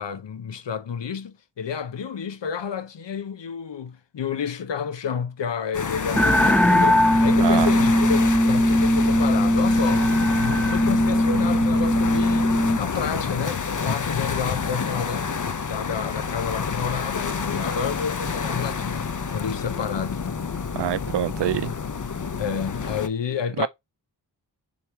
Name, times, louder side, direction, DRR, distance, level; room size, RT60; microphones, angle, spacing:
voice 1, 0.0-10.1 10.4-20.2 22.4-23.7, left 7 dB, 80° left, 0.8 m, -30 dB
sound 1, 5.7-23.1, left 5 dB, 45° left, 0.8 m, -29 dB
sound 2, 6.1-12.8, equal, 5° left, 0.4 m, -19 dB
voice 2, 7.4-7.7 20.7-21.7 23.6-23.7, right 11 dB, 70° right, 0.5 m, -25 dB
7.1 x 3.1 x 4.5 m
wide cardioid pair, 95°, 43 cm